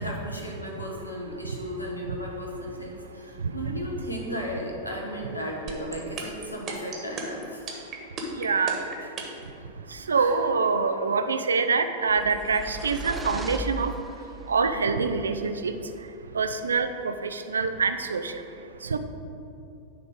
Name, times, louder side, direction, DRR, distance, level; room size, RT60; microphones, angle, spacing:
voice 1, 0.0-7.7 10.1-10.4, equal, 85° left, -1 dB, 1.4 m, -35 dB
voice 2, 3.4-3.7 8.4-8.8 10.1-13.9 14.5-15.7 16.3-18.3 18.9-19.0, right 4 dB, 70° right, 9 dB, 0.5 m, -25 dB
sound 1, 5.7-9.5, right 5 dB, 30° right, 1.5 m, -34 dB
sound 2, 12.1-14.5, right 1 dB, 10° right, 0.5 m, -36 dB
10.0 x 3.9 x 6.3 m, 2.6 s
figure-of-eight pair, 90°, 0 cm